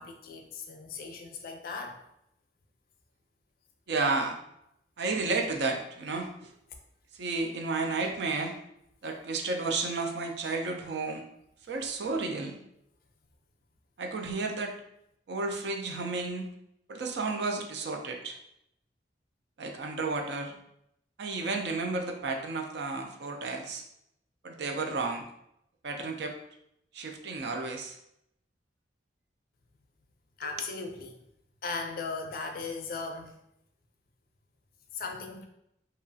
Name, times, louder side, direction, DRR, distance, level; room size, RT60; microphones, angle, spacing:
voice 1, 0.0-2.0 30.4-31.2 31.6-33.3 34.9-35.4, left 4 dB, 50° left, 3 dB, 0.4 m, -37 dB
voice 2, 3.9-4.4 5.0-6.5 7.1-8.6 9.0-11.2 11.7-12.6 14.0-14.7 15.3-16.5 16.9-18.4 19.6-20.6 21.2-23.8 24.4-25.2 25.8-26.4 26.9-28.0 30.4-30.5, right 3 dB, 65° right, 4 dB, 0.4 m, -32 dB
2.9 x 2.3 x 2.6 m, 0.78 s
head